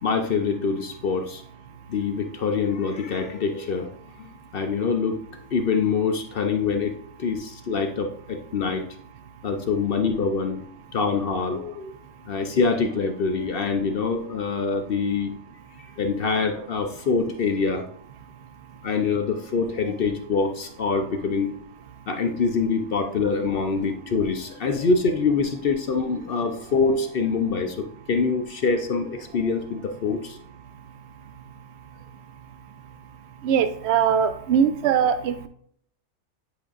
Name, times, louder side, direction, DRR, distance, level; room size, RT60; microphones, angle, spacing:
voice 1, 0.0-1.4 1.9-3.9 4.5-5.2 5.5-8.9 9.4-10.6 10.9-11.9 12.3-15.3 16.0-17.9 18.8-21.5 22.1-30.4, left 4 dB, 55° left, 6 dB, 0.6 m, -25 dB
voice 2, 33.4-35.5, right 8 dB, 65° right, 11 dB, 0.7 m, -21 dB
9.4 x 5.1 x 2.4 m, 0.64 s
omnidirectional pair, 1.5 m